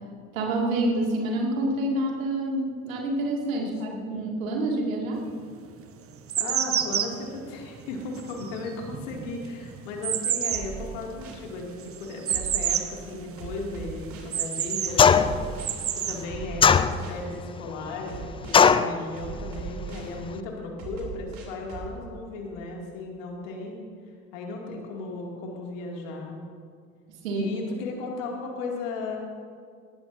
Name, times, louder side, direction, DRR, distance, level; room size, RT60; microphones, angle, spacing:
voice 1, 0.3-5.2 27.2-27.5, right 1 dB, 70° right, 0 dB, 2.4 m, -27 dB
voice 2, 3.6-4.0 6.4-15.3 15.9-23.9 24.3-26.4 27.3-29.2, left 3 dB, 65° left, 0 dB, 2.6 m, -36 dB
sound 1, 5.2-5.3 5.9-13.0 13.3-13.4 13.8-15.0 15.5-16.2, right 10 dB, 30° right, 0.9 m, -29 dB
sound 2, 10.5-11.5 12.3-12.9 13.4-14.3 15.2-15.7 16.3-17.2 18.1-18.6 19.2-20.1 20.8-21.9, right 6 dB, 50° right, 3.3 m, -39 dB
sound 3, 15.0-15.5 16.6-17.3 18.5-18.9, left 6 dB, 15° left, 0.4 m, -17 dB
18.5 x 15.5 x 2.7 m, 2.1 s
figure-of-eight pair, 60°, 42 cm